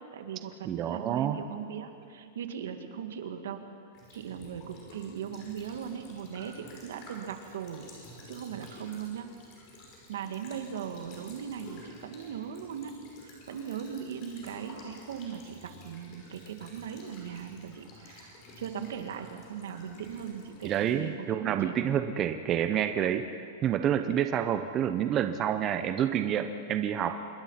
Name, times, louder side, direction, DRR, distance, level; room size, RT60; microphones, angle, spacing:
voice 1, 0.1-3.6 4.1-7.8 8.3-9.3 10.1-12.9 13.2-21.7, right 8 dB, 80° right, 6 dB, 2.2 m, -39 dB
voice 2, 0.7-1.4 20.6-27.2, right 9 dB, 20° right, 8 dB, 0.7 m, -28 dB
Child speech kid speaking / Bird vocalization bird call bird song / Stream, 3.9-20.9, left 1 dB, 30° left, 5.5 m, -52 dB
26.5 x 22.0 x 5.8 m, 2.6 s
supercardioid pair, 175°, 0 cm